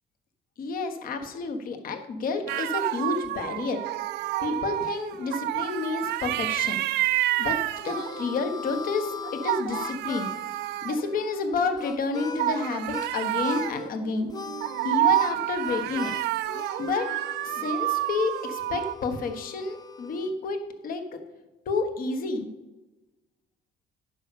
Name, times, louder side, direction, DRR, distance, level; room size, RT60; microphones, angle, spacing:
voice 1, 0.6-3.8 4.4-6.8 7.4-7.6 7.8-10.3 10.8-14.3 14.8-16.1 16.8-17.1 17.4-20.6 20.8-21.2 21.6-22.5, left 4 dB, 60° left, 7 dB, 1.4 m, -30 dB
sound 1, 2.5-8.4 9.2-11.7 12.4-19.0, right 16 dB, 80° right, 0.5 m, -29 dB
Harmonica, 7.3-13.1 13.4-13.9 14.3-20.3, left 4 dB, 25° left, 0.5 m, -39 dB
10.5 x 5.4 x 6.9 m, 1.1 s
cardioid pair, 110°, 17 cm